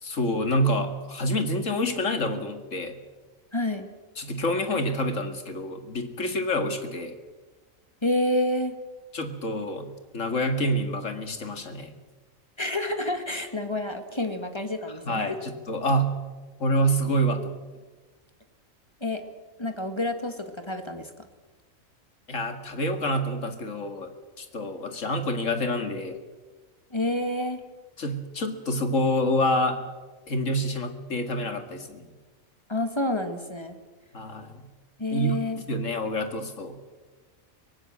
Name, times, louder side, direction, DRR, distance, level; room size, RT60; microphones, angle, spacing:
voice 1, 0.0-3.0 4.2-7.1 9.1-11.9 15.0-16.2 16.6-17.5 22.3-24.1 24.4-26.2 28.0-29.8 30.3-32.1 34.1-34.7 35.1-36.8, equal, 65° left, 7 dB, 2.5 m, -27 dB
voice 2, 3.5-3.9 8.0-8.7 12.6-15.4 19.0-19.2 19.6-21.1 26.9-27.6 32.7-33.8 35.0-35.6, left 1 dB, 20° left, 7 dB, 1.9 m, -28 dB
24.0 x 18.0 x 7.7 m, 1.3 s
omnidirectional pair, 1.4 m